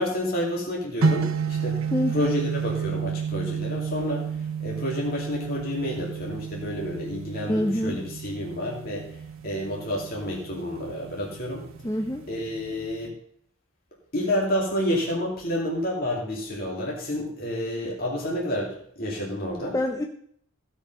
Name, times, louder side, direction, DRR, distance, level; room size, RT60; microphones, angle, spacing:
voice 1, 0.0-1.8 2.1-9.2 9.4-11.7 12.3-13.1 14.1-19.7, left 1 dB, 45° left, -3 dB, 2.5 m, -29 dB
sound 1, 1.0-13.1, right 6 dB, 80° right, 1.0 m, -31 dB
voice 2, 1.9-2.4 7.5-8.0 11.8-12.2 19.7-20.0, left 1 dB, 15° left, 4 dB, 0.5 m, -26 dB
15.5 x 5.4 x 5.4 m, 0.67 s
head